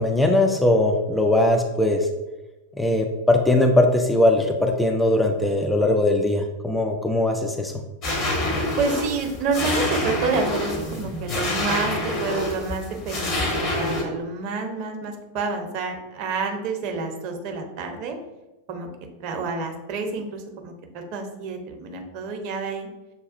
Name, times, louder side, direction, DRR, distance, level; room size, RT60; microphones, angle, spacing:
voice 1, 0.0-2.1 2.8-7.7, left 1 dB, 5° left, 3 dB, 0.4 m, -20 dB
sound 1, 8.0-14.0, left 1 dB, 40° left, 1.1 m, -27 dB
voice 2, 8.8-18.2 18.7-18.9 19.2-22.9, right 4 dB, 45° right, 4 dB, 0.7 m, -28 dB
6.6 x 2.3 x 2.5 m, 1.0 s
figure-of-eight pair, 90°, 0 cm